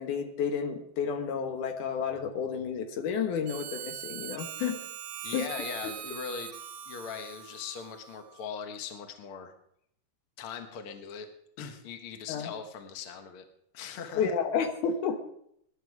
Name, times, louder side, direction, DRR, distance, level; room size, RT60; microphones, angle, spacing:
voice 1, 0.0-4.8 5.3-5.5 12.3-12.5 14.1-15.2, left 6 dB, 80° left, 7 dB, 2.7 m, -31 dB
Harmonica, 3.5-8.6, right 11 dB, 65° right, 1.5 m, -42 dB
voice 2, 5.2-6.5 6.9-9.5 10.4-11.3 11.6-13.5 13.7-14.3, left 6 dB, 55° left, 7 dB, 2.0 m, -40 dB
20.0 x 10.5 x 4.8 m, 0.71 s
omnidirectional pair, 3.5 m